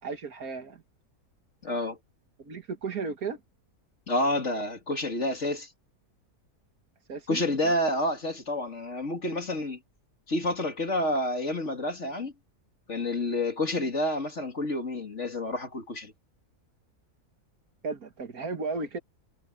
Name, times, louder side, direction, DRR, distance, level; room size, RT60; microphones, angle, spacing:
voice 1, 0.0-0.8 2.4-3.4 7.1-7.4 17.8-19.0, right 4 dB, 65° right, 2.2 m, -34 dB
voice 2, 1.6-2.0 4.1-5.7 7.3-9.8 10.3-12.3 12.9-16.1, left 1 dB, 45° left, 3.0 m, -29 dB
omnidirectional pair, 1.6 m